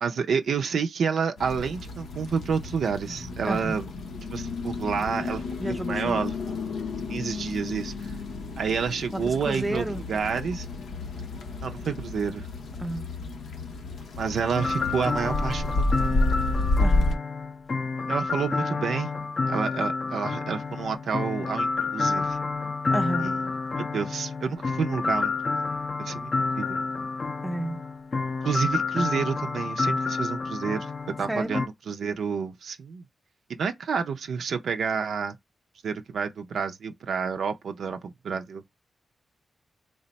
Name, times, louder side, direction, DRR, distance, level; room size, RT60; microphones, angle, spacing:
voice 1, 0.0-3.9 4.3-5.6 5.9-6.6 7.1-8.1 8.6-10.7 11.6-12.5 14.2-16.1 18.1-19.1 19.5-22.4 23.2-23.4 23.8-25.5 26.0-26.8 28.4-30.9 31.2-33.0 33.5-35.4 35.8-38.6, right 6 dB, 80° right, 0.4 m, -29 dB
sound 1, 1.4-17.1, left 2 dB, 90° left, 0.6 m, -31 dB
voice 2, 3.4-3.8 5.6-6.2 9.1-10.0 12.8-13.1 16.8-17.2 22.9-23.3 27.4-27.8 31.3-31.7, right 1 dB, 15° right, 0.4 m, -31 dB
sound 2, 14.5-31.7, left 4 dB, 50° left, 0.4 m, -29 dB
3.3 x 2.1 x 3.9 m
cardioid pair, 70°, 0 cm